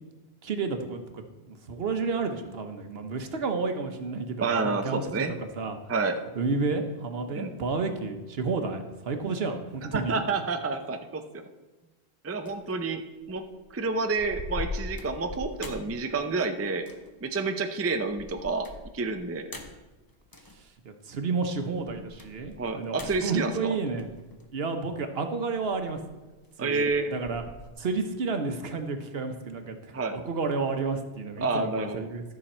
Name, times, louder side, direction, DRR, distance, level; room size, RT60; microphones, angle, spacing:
voice 1, 0.4-5.0 5.4-5.8 6.4-10.2 20.5-24.1 24.5-26.0 26.6-27.4 27.8-32.2, right 4 dB, 65° right, 6 dB, 1.1 m, -31 dB
voice 2, 4.4-5.3 5.9-6.2 7.3-7.5 9.9-11.4 12.2-13.0 13.3-13.4 13.7-16.9 17.2-18.7 18.9-19.5 22.6-23.7 26.6-27.1 29.9-30.2 31.4-32.1, right 3 dB, 20° right, 6 dB, 0.4 m, -29 dB
sound 1, 12.5-12.8 13.2-13.6 13.9-16.5 16.8-17.2 18.0-20.6 21.8-24.5 25.6-26.5 26.8-27.7, left 2 dB, 20° left, 0.9 m, -41 dB
12.5 x 6.3 x 4.3 m, 1.2 s
omnidirectional pair, 1.1 m